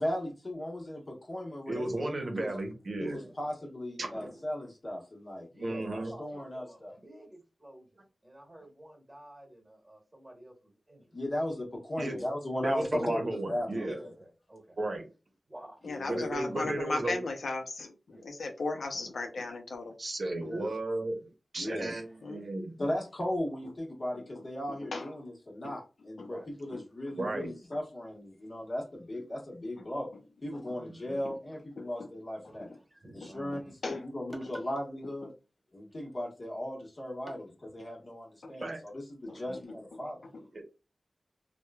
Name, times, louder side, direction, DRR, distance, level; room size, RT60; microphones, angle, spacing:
voice 1, 0.0-2.5 3.0-6.9 11.1-14.1 15.8-16.3 20.3-20.7 21.6-22.0 22.8-30.1 30.4-32.7 33.1-35.3 35.7-37.5 37.7-40.2, left 1 dB, 40° left, 1.0 m, -37 dB
voice 2, 1.7-3.2 4.0-4.1 5.6-6.1 12.0-12.2 12.6-14.0 14.8-15.0 16.1-17.2 20.0-21.2 21.5-22.8 27.2-27.5 30.8-30.9 38.6-38.8 40.5-40.6, right 2 dB, 60° right, 0.7 m, -34 dB
voice 3, 3.0-3.7 4.1-4.6 5.5-11.0 13.8-14.8 15.5-15.8 18.1-18.2 20.5-20.9 22.1-22.2 26.3-26.5 30.7-30.9 32.5-33.7 34.3-34.8 37.2-37.3 37.7-37.9 39.2-39.4, right 1 dB, 15° right, 1.2 m, -51 dB
voice 4, 15.8-19.9 22.2-22.4 24.7-25.1 25.6-25.7 26.2-26.3 26.7-26.8 30.5-30.8 31.8-31.9 32.6-32.8 33.2-33.3 33.8-34.0 38.4-38.7 39.3-39.4 39.9-40.0 40.3-40.4, left 3 dB, 90° left, 0.5 m, -36 dB
3.0 x 2.2 x 2.2 m
wide cardioid pair, 75°, 0 cm